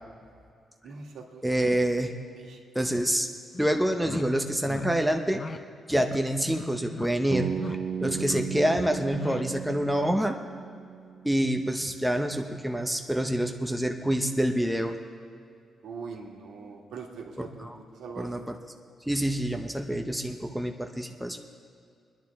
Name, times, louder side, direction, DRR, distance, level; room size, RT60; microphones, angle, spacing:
voice 1, 0.8-1.7 2.4-2.6 15.8-18.5, right 5 dB, 85° right, 1 dB, 1.8 m, -42 dB
voice 2, 1.4-2.1 2.7-3.3 3.6-5.4 5.9-7.5 8.0-10.4 11.2-14.9 17.6-17.8 18.2-18.4 19.1-21.4, right 1 dB, 5° right, 4 dB, 0.7 m, -27 dB
sound 1, 3.0-3.1 3.5-3.7 4.0-4.2 4.6-4.9 5.3-5.6 5.9-6.2 6.5-7.1 7.4-7.8 8.0-8.4 8.8-9.4, left 4 dB, 35° left, 0.6 m, -38 dB
Bass guitar, 7.3-11.4, right 6 dB, 35° right, 0.7 m, -35 dB
24.0 x 10.5 x 3.5 m, 2.3 s
wide cardioid pair, 150°, 0 cm